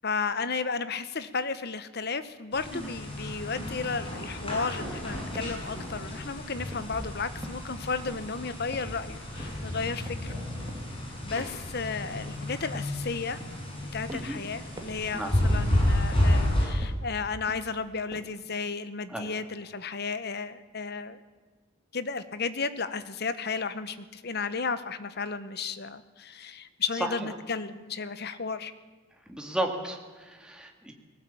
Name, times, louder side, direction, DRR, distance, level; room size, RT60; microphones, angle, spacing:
voice 1, 0.0-10.3 11.2-13.4 13.9-21.2 21.9-28.7, left 4 dB, 50° left, 13 dB, 1.1 m, -33 dB
sound 1, 2.5-16.7, left 1 dB, 25° left, 6.2 m, -31 dB
sound 2, 5.3-7.2 7.4-9.8 10.1-10.4 10.7-13.1 13.4-14.5 14.8-15.1 15.4-15.9 16.1-17.1 17.4-17.9 18.1-18.3, right 1 dB, 20° right, 2.3 m, -47 dB
voice 2, 29.3-30.9, right 1 dB, 5° right, 2 dB, 2.3 m, -33 dB
19.5 x 17.5 x 8.7 m, 1.3 s
head